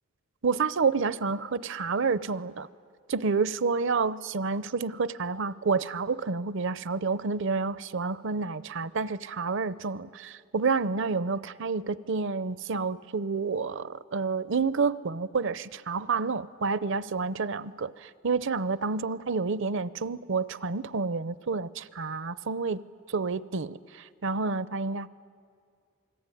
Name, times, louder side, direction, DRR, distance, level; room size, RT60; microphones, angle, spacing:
voice 1, 0.4-2.7 3.1-22.8 23.1-25.1, right 4 dB, 60° right, 17 dB, 0.6 m, -29 dB
28.0 x 20.5 x 9.9 m, 2.2 s
head